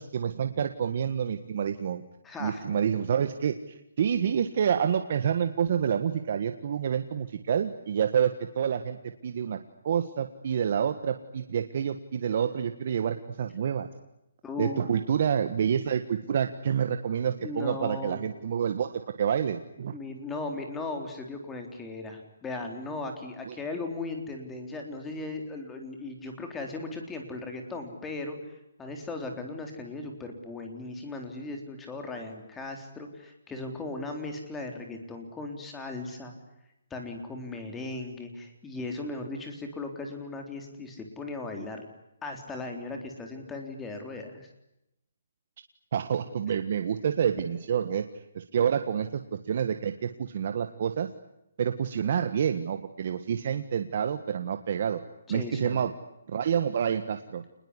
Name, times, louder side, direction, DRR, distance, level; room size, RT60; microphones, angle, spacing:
voice 1, 0.0-2.0 2.4-9.6 9.8-13.9 14.6-20.0 23.5-23.6 45.9-51.1 51.6-55.0 55.3-55.9 56.3-57.4, right 8 dB, 45° right, 8 dB, 1.6 m, -28 dB
voice 2, 2.2-2.6 14.4-15.0 17.4-18.2 19.9-28.4 28.8-36.3 36.9-41.8 42.2-44.5 48.6-48.7 55.3-55.8, left 3 dB, 10° left, 3 dB, 3.8 m, -37 dB
28.0 x 21.0 x 9.8 m, 0.86 s
hypercardioid pair, 165°, 0 cm